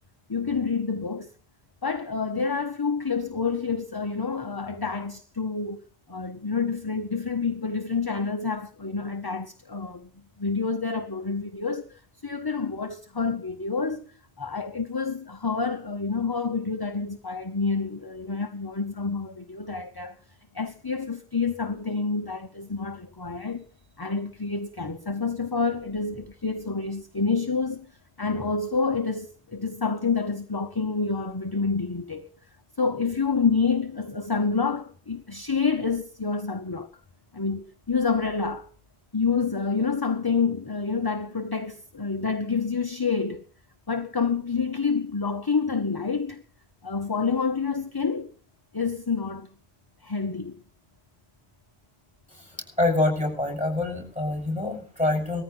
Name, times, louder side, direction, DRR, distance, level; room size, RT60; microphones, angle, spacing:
voice 1, 0.3-1.3 1.8-5.8 6.1-10.1 10.4-14.1 14.4-20.2 20.5-23.6 24.0-27.9 28.2-32.3 32.8-36.9 37.3-38.7 39.1-43.5 43.9-46.4 46.8-48.3 48.7-49.5 50.0-50.6, left 5 dB, 25° left, 0.9 m, -28 dB
voice 2, 52.8-55.4, left 2 dB, 5° right, 6.0 m, -25 dB
20.0 x 14.5 x 3.9 m
omnidirectional pair, 1.1 m